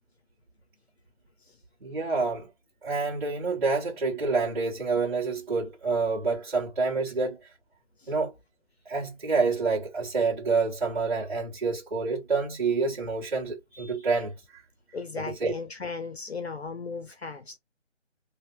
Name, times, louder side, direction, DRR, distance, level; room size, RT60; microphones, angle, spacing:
voice 1, 1.8-2.5 2.8-7.5 8.1-8.3 8.8-14.6 15.2-15.5, right 4 dB, 40° right, 1.3 m, -28 dB
voice 2, 14.9-17.6, left 4 dB, 60° left, 0.7 m, -36 dB
3.3 x 2.7 x 2.6 m
figure-of-eight pair, 170°, 37 cm